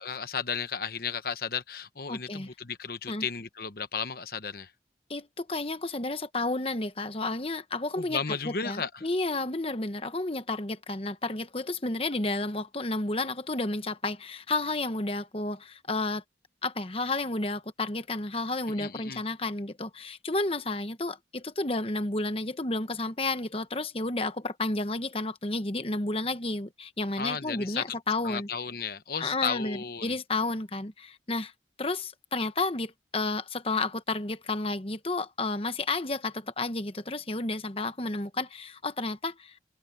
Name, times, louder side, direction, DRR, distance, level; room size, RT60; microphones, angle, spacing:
voice 1, 0.0-4.7 8.0-9.1 18.7-19.2 27.2-28.0 28.2-30.2, left 6 dB, 55° left, 1.1 m, -34 dB
voice 2, 2.1-2.5 3.1-3.2 5.1-8.2 8.4-16.2 16.6-28.5 29.2-31.5 31.8-39.6, left 2 dB, 30° left, 1.1 m, -31 dB
head